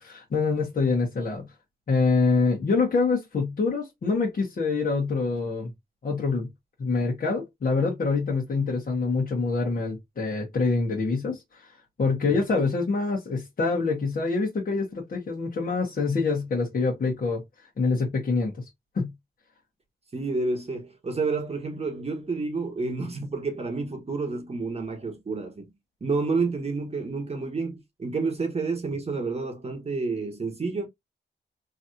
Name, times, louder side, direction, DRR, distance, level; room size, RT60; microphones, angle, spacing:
voice 1, 0.0-1.5 1.9-5.7 6.0-6.5 6.8-11.6 12.0-17.4 17.8-18.6 18.9-19.1, left 4 dB, 50° left, 1.4 m, -25 dB
voice 2, 12.3-12.7 20.1-25.7 26.0-30.9, right 3 dB, 35° right, 1.0 m, -29 dB
3.2 x 2.8 x 2.6 m
cardioid pair, 75°, 19 cm